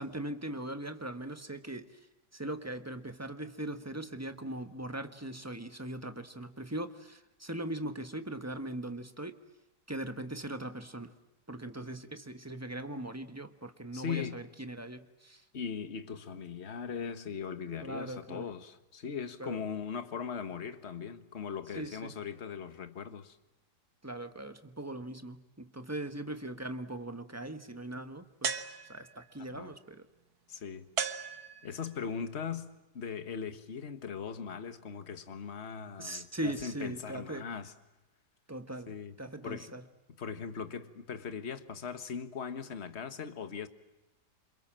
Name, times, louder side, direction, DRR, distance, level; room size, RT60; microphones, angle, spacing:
voice 1, 0.0-2.0 2.3-9.4 9.9-11.1 11.5-15.4 17.8-18.5 19.4-19.6 21.7-22.1 24.0-28.6 28.9-30.1 36.0-37.5 38.5-38.9 39.2-39.8, right 1 dB, 10° right, 1.3 m, -40 dB
voice 2, 13.9-14.4 15.5-23.4 29.4-29.7 30.5-30.9 31.6-32.7 32.9-37.7 38.9-39.2 39.4-39.8 40.2-43.7, left 6 dB, 40° left, 1.7 m, -39 dB
sound 1, 28.4-29.3 31.0-31.9, right 7 dB, 60° right, 1.9 m, -36 dB
29.0 x 27.0 x 7.6 m
omnidirectional pair, 1.9 m